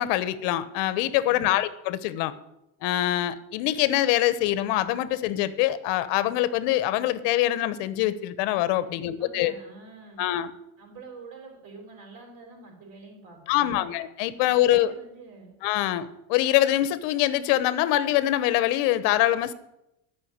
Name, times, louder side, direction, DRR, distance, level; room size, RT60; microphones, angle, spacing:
voice 1, 0.0-2.3 2.8-9.5 10.2-10.5 13.5-14.9 15.6-19.5, left 14 dB, 65° left, 14 dB, 1.0 m, -24 dB
voice 2, 1.2-1.6 8.8-10.2 10.8-13.9 14.4-15.5, right 3 dB, 50° right, 1 dB, 4.6 m, -47 dB
12.5 x 5.9 x 8.8 m, 0.87 s
cardioid pair, 150°, 45 cm